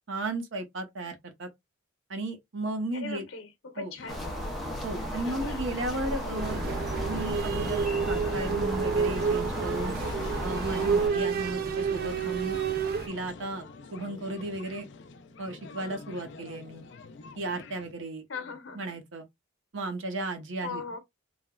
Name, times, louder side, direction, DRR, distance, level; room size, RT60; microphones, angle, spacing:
voice 1, 0.1-1.5 2.1-3.3 3.8-3.9 4.8-6.6 7.0-10.0 10.4-12.6 13.1-14.9 15.4-16.8 17.4-18.2 18.7-19.3 19.7-20.8, right 2 dB, 75° right, 0.8 m, -35 dB
voice 2, 2.9-4.3 10.2-10.3 18.3-18.8 20.6-21.0, left 4 dB, 85° left, 0.8 m, -39 dB
sound 1, 4.0-17.9, left 4 dB, 60° left, 0.4 m, -45 dB
sound 2, 4.1-11.1, equal, ahead, 0.6 m, -35 dB
sound 3, 6.3-13.1, right 6 dB, 50° right, 0.3 m, -29 dB
3.2 x 2.1 x 2.3 m
head